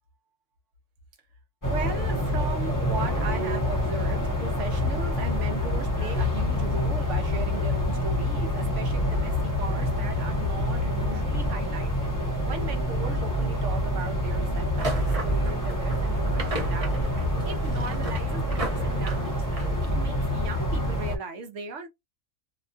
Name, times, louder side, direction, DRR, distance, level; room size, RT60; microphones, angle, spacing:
sound 1, 1.6-21.2, left 1 dB, 20° left, 0.7 m, -27 dB
voice 1, 1.6-17.0 17.4-19.5 19.9-21.9, right 4 dB, 70° right, 1.1 m, -37 dB
sound 2, 14.8-20.2, right 1 dB, 30° right, 0.8 m, -36 dB
2.8 x 2.3 x 2.6 m
omnidirectional pair, 1.4 m